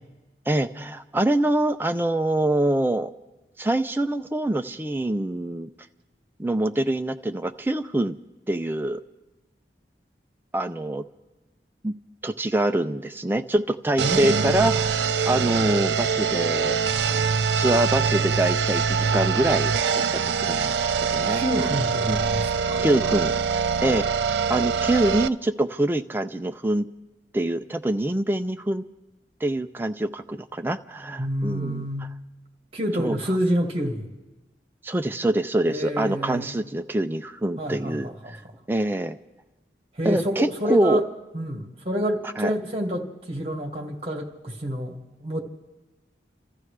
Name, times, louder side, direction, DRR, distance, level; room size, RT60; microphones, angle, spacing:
voice 1, 0.5-3.1 3.6-5.7 6.4-8.2 8.5-9.0 10.5-11.0 11.8-11.9 12.2-17.0 17.5-20.7 21.1-21.4 22.1-22.2 22.8-23.3 23.8-24.1 24.5-26.9 27.3-28.8 29.4-31.8 33.0-33.2 34.8-38.1 38.7-39.2 40.0-41.0 42.4-42.5, right 1 dB, 10° right, 6 dB, 0.4 m, -25 dB
voice 2, 14.0-14.7 21.3-22.8 31.2-32.2 32.7-34.1 35.7-36.6 37.6-38.6 39.9-41.0 41.3-45.4, equal, 35° right, 1 dB, 2.0 m, -28 dB
sound 1, 14.0-25.3, right 6 dB, 75° right, 0.4 m, -24 dB
30.0 x 14.0 x 3.3 m, 1.1 s
head